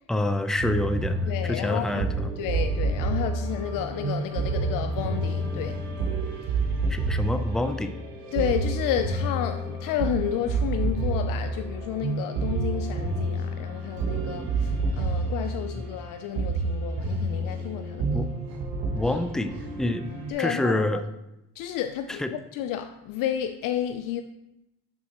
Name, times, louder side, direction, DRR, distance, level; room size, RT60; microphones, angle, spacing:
voice 1, 0.1-2.3 6.9-7.9 18.1-18.3 18.9-20.0 20.4-21.0 22.1-22.3, left 1 dB, ahead, 0.5 m, -27 dB
sound 1, 0.6-20.3, right 3 dB, 75° right, 1.6 m, -29 dB
voice 2, 1.2-2.1 2.4-5.8 8.3-18.3 20.3-20.8 21.6-24.2, left 10 dB, 65° left, 0.5 m, -31 dB
11.0 x 4.1 x 3.0 m
supercardioid pair, 80°, 36 cm